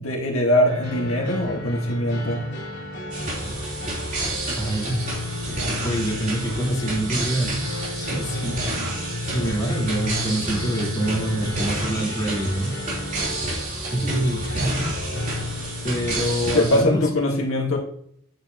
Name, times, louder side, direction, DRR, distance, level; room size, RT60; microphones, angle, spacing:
voice 1, 0.0-2.5 16.5-17.8, left 1 dB, 75° left, -1 dB, 1.8 m, -22 dB
sound 1, 0.6-16.7, left 2 dB, 55° left, 3.0 m, -32 dB
sound 2, 3.1-16.8, right 2 dB, 40° right, 3.6 m, -30 dB
voice 2, 4.6-5.0 5.3-5.5 5.8-8.6 9.2-12.8 13.9-14.9 15.8-17.1, right 1 dB, 15° left, -6 dB, 3.8 m, -26 dB
9.5 x 8.9 x 3.0 m, 0.66 s
head